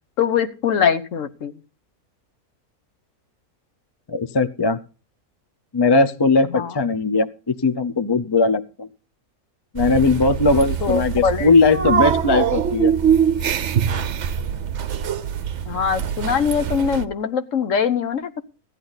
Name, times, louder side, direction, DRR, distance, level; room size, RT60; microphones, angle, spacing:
voice 1, 0.2-1.6 6.5-6.8 10.8-11.5 15.7-18.4, left 7 dB, 60° left, 10 dB, 1.2 m, -22 dB
voice 2, 4.1-4.8 5.7-8.9 9.7-12.9, left 3 dB, 25° left, 12 dB, 0.5 m, -19 dB
sound 1, 9.8-17.1, right 8 dB, 60° right, 1.0 m, -23 dB
15.5 x 10.5 x 4.0 m, 0.35 s
omnidirectional pair, 1.6 m